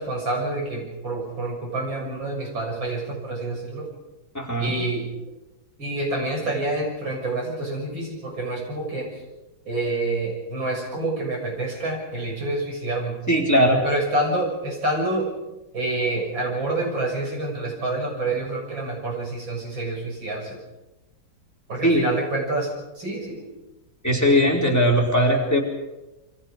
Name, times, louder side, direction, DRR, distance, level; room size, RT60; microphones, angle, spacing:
voice 1, 0.0-3.9 4.6-5.1 5.8-9.1 9.7-13.2 13.8-15.3 15.7-20.5 21.7-23.5, right 2 dB, 80° right, 0 dB, 7.5 m, -27 dB
voice 2, 4.3-4.8 13.3-13.8 21.8-22.0 24.0-25.6, equal, 10° left, -1 dB, 4.4 m, -19 dB
28.0 x 24.5 x 5.2 m, 1.0 s
omnidirectional pair, 2.1 m